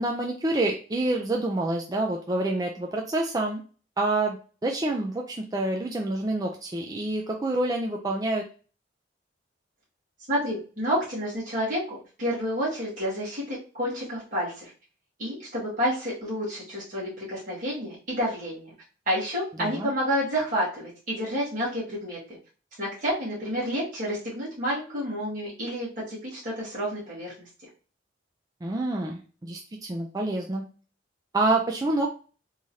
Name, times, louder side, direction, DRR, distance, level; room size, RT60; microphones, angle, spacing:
voice 1, 0.0-3.6 4.0-8.4 19.6-19.9 28.6-30.6 31.3-32.1, right 2 dB, 20° right, 0 dB, 0.4 m, -27 dB
voice 2, 10.3-14.7 15.2-18.7 19.1-22.4 22.8-27.3, equal, 45° right, -8 dB, 1.8 m, -29 dB
3.6 x 3.1 x 2.7 m, 0.37 s
head